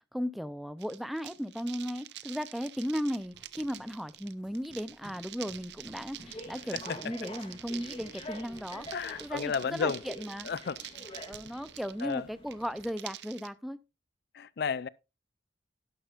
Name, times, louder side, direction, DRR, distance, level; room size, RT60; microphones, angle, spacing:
voice 1, 0.1-8.9 9.2-10.5 11.3-13.8, equal, ahead, 0.5 m, -36 dB
sound 1, 0.8-13.5, right 13 dB, 65° right, 0.7 m, -47 dB
sound 2, 3.2-9.4, right 1 dB, 25° right, 1.4 m, -58 dB
sound 3, 6.1-12.9, left 1 dB, 30° left, 2.3 m, -46 dB
voice 2, 8.9-10.0 10.4-10.8 12.0-12.2 14.3-14.9, left 6 dB, 60° left, 0.4 m, -32 dB
11.5 x 11.0 x 2.5 m
head